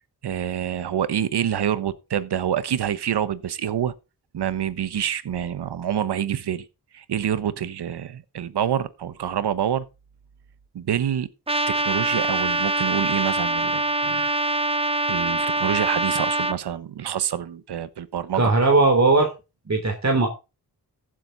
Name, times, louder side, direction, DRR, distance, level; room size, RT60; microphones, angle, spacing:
voice 1, 0.2-3.9 4.3-6.7 6.9-9.9 10.7-11.3 11.7-14.3 15.1-18.5, right 9 dB, 85° right, 1.1 m, -27 dB
Trumpet, 11.5-16.6, right 2 dB, 15° right, 0.8 m, -24 dB
voice 2, 18.4-19.3 19.7-20.3, right 3 dB, 45° right, 3.3 m, -18 dB
15.0 x 7.9 x 4.0 m
cardioid pair, 55°, 39 cm